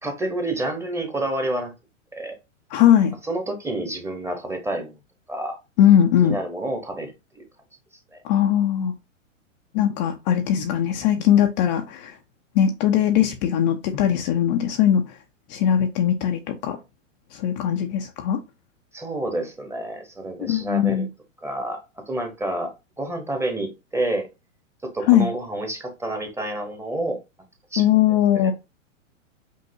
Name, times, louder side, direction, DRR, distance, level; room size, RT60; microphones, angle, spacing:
voice 1, 0.0-1.7 2.1-2.4 3.2-4.9 5.3-5.6 6.2-7.4 8.1-8.2 18.9-21.1 21.4-21.8 22.1-24.3 24.9-27.2 27.7-27.8 28.3-28.5, right 1 dB, 5° right, 1.0 m, -29 dB
voice 2, 2.7-3.2 5.8-6.4 8.2-8.9 9.7-12.2 12.5-15.2 15.5-16.8 17.3-18.4 20.4-21.1 25.1-25.3 27.8-28.5, left 10 dB, 35° left, 0.6 m, -20 dB
5.5 x 2.8 x 2.6 m
hypercardioid pair, 110°, 39 cm